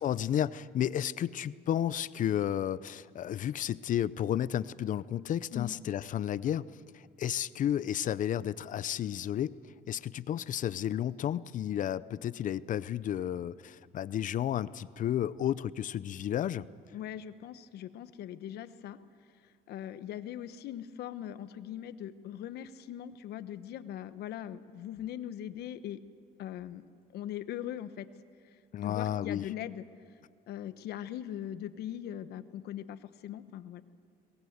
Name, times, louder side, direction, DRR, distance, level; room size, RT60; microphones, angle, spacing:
voice 1, 0.0-6.7 6.9-9.6 9.9-16.7 28.7-29.5, left 10 dB, 50° left, 17 dB, 0.6 m, -32 dB
voice 2, 16.9-19.0 19.7-26.0 26.4-26.8 27.1-28.1 28.8-29.8 30.5-33.8, left 11 dB, 75° left, 12 dB, 1.1 m, -40 dB
22.5 x 19.0 x 8.1 m, 2.2 s
cardioid pair, 110°, 17 cm